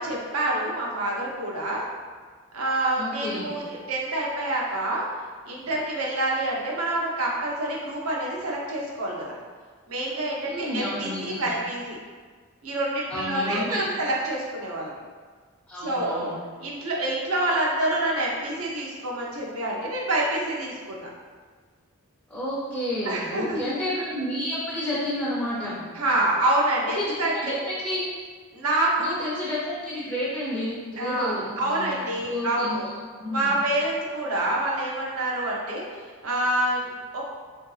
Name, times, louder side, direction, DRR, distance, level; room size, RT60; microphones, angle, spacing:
voice 1, 0.0-1.8 2.5-5.0 5.4-9.4 9.9-12.0 12.6-14.9 15.8-16.3 16.6-21.1 23.0-23.7 25.9-27.6 28.5-29.1 31.0-32.9 33.3-35.8 36.2-37.2, right 1 dB, 80° right, -3 dB, 0.7 m, -27 dB
voice 2, 3.0-3.5 10.5-11.5 13.1-13.8 15.7-16.4 22.3-25.8 26.9-28.1 29.0-32.8 33.1-33.5, left 1 dB, 5° left, -10 dB, 0.5 m, -30 dB
3.6 x 2.6 x 2.3 m, 1.5 s
head